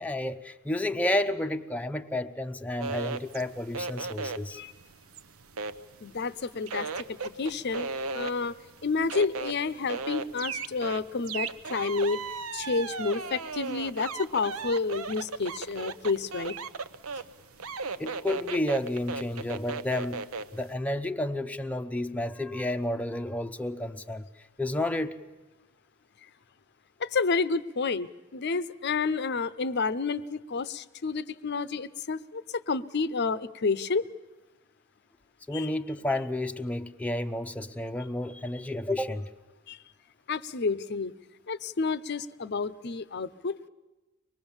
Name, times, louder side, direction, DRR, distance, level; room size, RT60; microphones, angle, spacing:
voice 1, 0.0-4.6 18.0-20.2 20.5-24.3 24.6-25.2 35.5-39.3, left 1 dB, 5° left, 6 dB, 0.7 m, -31 dB
sound 1, 2.8-6.3 6.7-20.6, right 4 dB, 80° right, 0.8 m, -35 dB
voice 2, 6.0-8.6 8.8-12.2 12.5-16.6 27.0-34.1 35.5-35.7 39.7-39.8 40.3-41.1 41.5-43.7, left 4 dB, 50° left, 15 dB, 0.7 m, -30 dB
24.5 x 20.5 x 7.2 m, 1.1 s
head